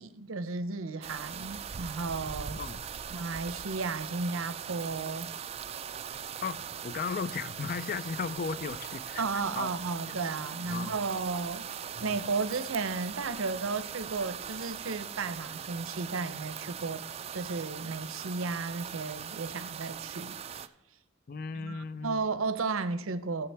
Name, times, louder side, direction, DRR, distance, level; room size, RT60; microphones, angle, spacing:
voice 1, 0.0-2.6 3.1-5.3 9.2-11.7 12.0-17.0 17.3-20.7 21.5-23.5, right 4 dB, 90° right, 0.7 m, -34 dB
sound 1, 1.0-20.7, right 8 dB, 30° right, 0.3 m, -40 dB
voice 2, 6.4-9.2 9.5-9.7 10.1-10.2 10.6-11.0 12.0-12.2 21.3-22.2, left 5 dB, 45° left, 0.4 m, -36 dB
15.5 x 6.8 x 3.4 m
head